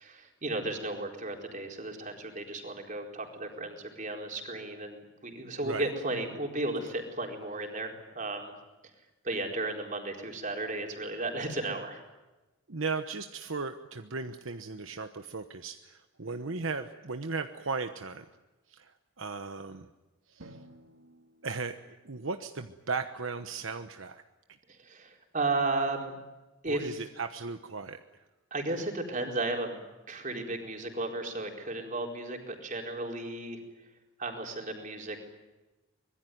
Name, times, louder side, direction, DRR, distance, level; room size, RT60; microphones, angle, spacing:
voice 1, 0.0-8.5 9.2-12.0 24.7-26.1 26.6-27.0 28.5-29.8 30.1-33.6 34.2-35.2, right 2 dB, 40° right, 2 dB, 4.4 m, -34 dB
voice 2, 12.7-18.3 18.7-19.9 20.3-20.6 21.4-21.7 22.0-24.2 26.7-28.2, right 4 dB, 70° right, 7 dB, 1.1 m, -36 dB
Drum, 20.4-22.9, right 1 dB, 90° right, 3.1 m, -55 dB
25.0 x 21.5 x 9.4 m, 1.1 s
head